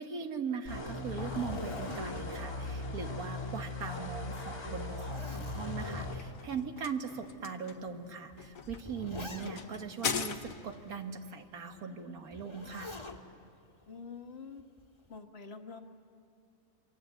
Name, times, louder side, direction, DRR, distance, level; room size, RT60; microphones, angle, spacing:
voice 1, 0.0-12.9, right 6 dB, 85° right, 6 dB, 1.9 m, -40 dB
sound 1, 0.7-6.2, left 2 dB, 90° left, 2.5 m, -39 dB
Zipper (clothing), 0.7-3.6 4.0-4.1 4.6-6.5 7.2-7.3 8.3-9.9 12.3-13.2 14.6-15.1, left 2 dB, 20° left, 1.6 m, -44 dB
sound 2, 5.9-10.9, left 6 dB, 70° left, 1.5 m, -40 dB
voice 2, 13.9-14.6 15.1-15.8, left 5 dB, 45° left, 5 dB, 1.6 m, -46 dB
27.5 x 25.5 x 8.1 m, 2.5 s
omnidirectional pair, 1.5 m